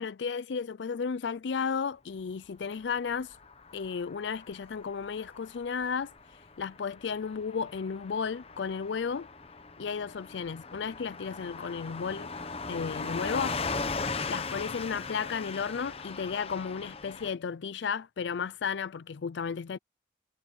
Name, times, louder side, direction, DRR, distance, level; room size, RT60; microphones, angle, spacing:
voice 1, 0.0-3.4 3.7-9.3 9.8-12.3 12.7-13.6 14.3-19.8, left 6 dB, 80° left, 0.4 m, -34 dB
Car passing by / Truck, 3.0-17.3, left 4 dB, 35° left, 0.9 m, -39 dB
head